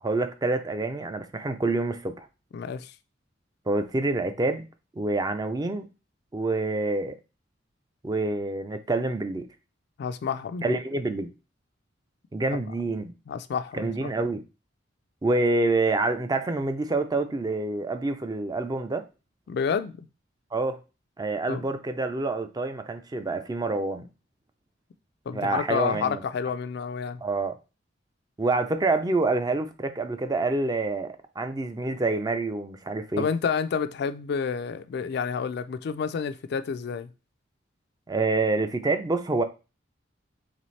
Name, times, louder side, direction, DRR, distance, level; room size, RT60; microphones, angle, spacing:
voice 1, 0.0-2.2 3.7-4.7 5.0-5.9 6.3-7.2 8.0-9.5 10.6-11.3 12.3-13.1 13.7-14.4 15.2-19.1 20.5-20.8 21.2-24.1 25.3-26.2 27.2-27.5 28.4-33.3 38.1-39.4, right 2 dB, 20° right, 0.4 m, -27 dB
voice 2, 2.5-2.9 10.0-10.8 13.3-14.1 19.5-20.1 21.5-21.6 25.3-27.2 33.2-37.1, left 6 dB, 60° left, 0.3 m, -29 dB
4.2 x 3.4 x 3.1 m
head